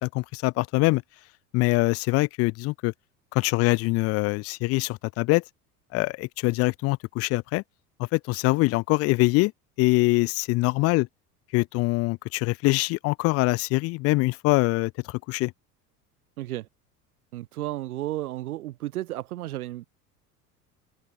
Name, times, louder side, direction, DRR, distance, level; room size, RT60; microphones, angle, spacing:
voice 1, 0.0-1.0 1.5-2.9 3.3-5.4 5.9-7.6 8.0-9.5 9.8-11.1 11.5-15.5, left 23 dB, 30° left, 0.5 m, -24 dB
voice 2, 16.4-16.7 17.3-19.9, right 15 dB, 65° right, 1.1 m, -33 dB
figure-of-eight pair, 70°, 47 cm